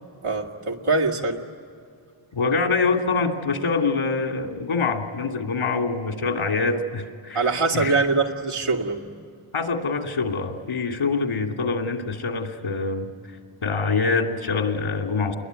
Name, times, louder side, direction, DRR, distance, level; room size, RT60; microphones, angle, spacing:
voice 1, 0.2-1.4 7.3-9.0, right 3 dB, 90° right, 0 dB, 2.5 m, -23 dB
voice 2, 2.3-7.9 9.5-13.1 13.6-15.4, left 4 dB, 85° left, 4 dB, 2.7 m, -25 dB
28.0 x 22.0 x 9.4 m, 2.3 s
wide cardioid pair, 85°, 49 cm